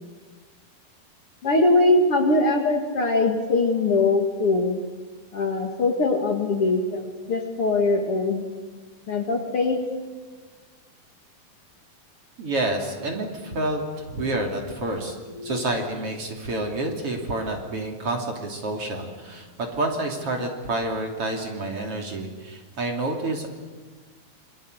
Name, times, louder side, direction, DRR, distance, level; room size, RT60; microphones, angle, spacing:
voice 1, 1.4-4.8 5.3-8.4 9.1-9.8 15.4-15.6, left 2 dB, 45° left, 3 dB, 2.5 m, -22 dB
voice 2, 12.4-15.2 15.4-23.5, right 2 dB, 40° right, 2 dB, 3.6 m, -28 dB
28.0 x 24.5 x 8.0 m, 1.4 s
omnidirectional pair, 4.2 m